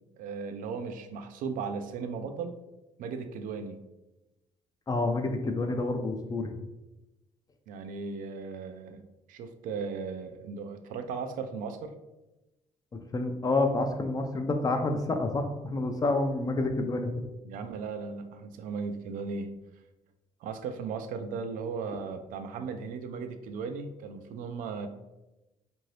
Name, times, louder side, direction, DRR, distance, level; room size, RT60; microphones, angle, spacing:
voice 1, 0.2-2.5 3.0-3.8 7.7-9.0 9.3-11.9 17.4-19.5 20.4-24.9, right 5 dB, 80° right, 8 dB, 0.4 m, -36 dB
voice 2, 4.9-6.5 12.9-17.1, left 2 dB, 25° left, 5 dB, 0.4 m, -28 dB
2.7 x 2.6 x 3.2 m, 1.0 s
cardioid pair, 95°, 14 cm